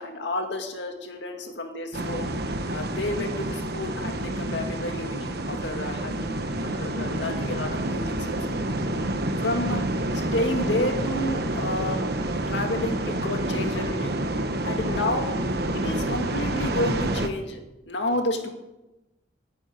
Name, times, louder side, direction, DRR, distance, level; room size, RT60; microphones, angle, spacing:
voice 1, 0.0-2.3 2.7-8.7 9.4-9.8 10.1-12.1 12.5-14.2 14.6-15.3 15.7-18.5, left 1 dB, 65° left, 4 dB, 2.1 m, -30 dB
sound 1, 1.9-17.3, right 1 dB, 55° right, 1.1 m, -28 dB
10.0 x 10.0 x 9.6 m, 0.98 s
head